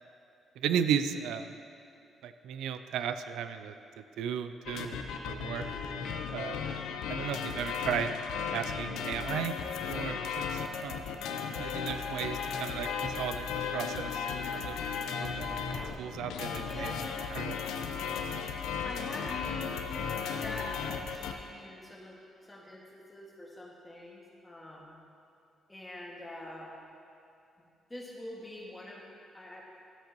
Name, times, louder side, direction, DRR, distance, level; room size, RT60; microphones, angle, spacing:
voice 1, 0.6-1.5 2.2-5.0 5.3-5.6 6.3-6.6 7.1-8.1 8.5-9.6 9.9-11.2 11.6-13.5 13.7-14.3 14.5-14.8 15.2-15.6 16.0-16.9 17.3-17.6, right 8 dB, 85° right, 10 dB, 0.3 m, -35 dB
sound 1, 4.7-21.3, left 6 dB, 90° left, 0.6 m, -35 dB
voice 2, 16.7-17.0 18.0-18.1 18.8-25.0 25.7-26.8 27.9-29.1 29.3-29.8, left 1 dB, 15° left, -4 dB, 1.8 m, -45 dB
13.0 x 7.9 x 3.0 m, 2.7 s
cardioid pair, 90°, 0 cm